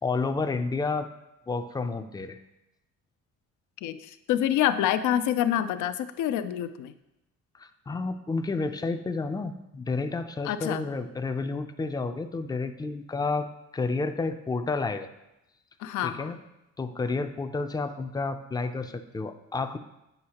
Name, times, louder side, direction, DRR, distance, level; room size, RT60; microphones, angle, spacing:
voice 1, 0.0-1.1 1.5-2.4 7.6-13.5 13.7-15.1 16.0-16.4 16.8-19.8, left 3 dB, 15° left, 8 dB, 0.4 m, -30 dB
voice 2, 3.8-6.9 10.4-10.9 15.8-16.3, left 11 dB, 80° left, 12 dB, 0.5 m, -27 dB
7.9 x 5.5 x 2.9 m, 0.91 s
cardioid pair, 90°, 30 cm